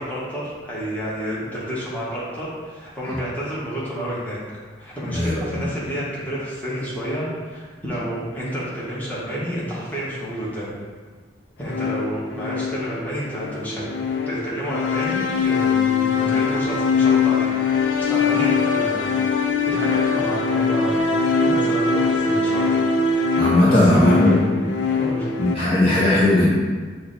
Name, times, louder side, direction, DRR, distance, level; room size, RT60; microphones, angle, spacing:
voice 1, 0.0-4.4 4.8-10.7 11.6-13.9 14.3-19.1 19.6-21.0 21.4-22.7 23.6-24.4 25.0-25.6, equal, 10° left, -8 dB, 1.0 m, -29 dB
voice 2, 5.1-5.6 23.4-24.3 25.4-26.5, left 1 dB, 30° left, -8 dB, 0.6 m, -17 dB
sound 1, 11.6-25.5, left 5 dB, 80° left, 0.4 m, -22 dB
5.5 x 2.2 x 3.9 m, 1.5 s
head